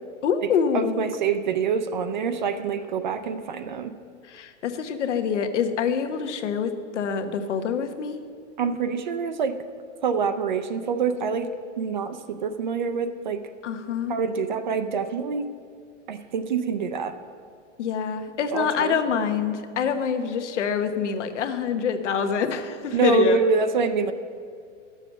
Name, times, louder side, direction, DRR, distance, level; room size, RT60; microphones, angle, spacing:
voice 1, 0.2-1.0 4.2-8.2 13.6-14.2 17.8-23.4, left 7 dB, 70° left, 8 dB, 1.1 m, -26 dB
voice 2, 0.7-4.0 8.6-9.6 10.0-11.5 11.8-13.4 14.1-15.4 16.1-17.1 18.5-18.9 22.9-24.1, right 5 dB, 40° right, 9 dB, 0.5 m, -26 dB
11.5 x 7.0 x 7.1 m, 2.3 s
supercardioid pair, 180°, 37 cm